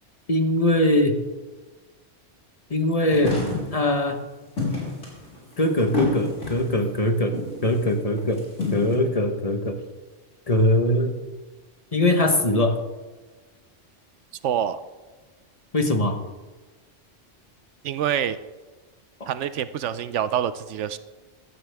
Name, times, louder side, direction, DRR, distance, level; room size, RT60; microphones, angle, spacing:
voice 1, 0.3-1.2 2.7-3.4 3.7-4.2 5.6-9.8 10.5-11.2 11.9-12.8 15.7-16.2, left 1 dB, 30° left, 5 dB, 1.2 m, -22 dB
sound 1, 3.1-3.8 4.6-6.8 7.3-7.7 8.2-9.0, left 3 dB, 85° left, 4.3 m, -28 dB
voice 2, 14.4-14.8 17.8-18.4 19.3-21.0, right 9 dB, 80° right, 13 dB, 0.9 m, -26 dB
16.0 x 12.5 x 3.5 m, 1.3 s
omnidirectional pair, 1.2 m